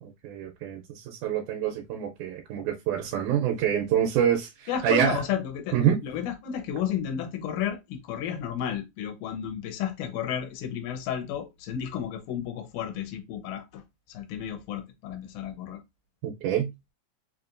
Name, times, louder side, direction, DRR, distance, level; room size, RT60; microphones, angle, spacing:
voice 1, 0.0-5.2 5.7-6.0 16.2-16.7, right 9 dB, 80° right, 2.1 m, -26 dB
voice 2, 4.7-13.8 14.1-15.8, left 9 dB, 85° left, 2.2 m, -32 dB
4.9 x 2.8 x 2.5 m
omnidirectional pair, 3.4 m